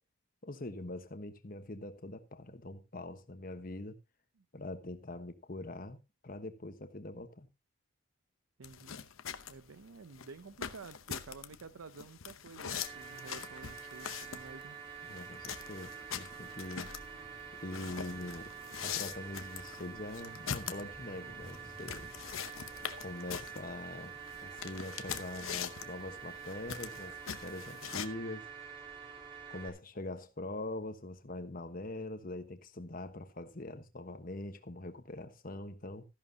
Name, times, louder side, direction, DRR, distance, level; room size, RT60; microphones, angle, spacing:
voice 1, 0.4-4.0 4.5-6.0 6.2-7.5 15.0-17.0 17.5-18.5 18.8-22.1 23.0-28.5 29.5-36.1, left 2 dB, 40° left, 1.1 m, -43 dB
sound 1, 8.6-28.1, left 8 dB, 75° left, 0.8 m, -43 dB
voice 2, 8.6-9.1 9.5-14.8, right 4 dB, 80° right, 0.6 m, -51 dB
sound 2, 12.7-29.7, right 7 dB, 25° right, 3.2 m, -47 dB
sound 3, 15.6-28.3, right 1 dB, 45° right, 2.4 m, -59 dB
14.0 x 11.0 x 2.8 m
head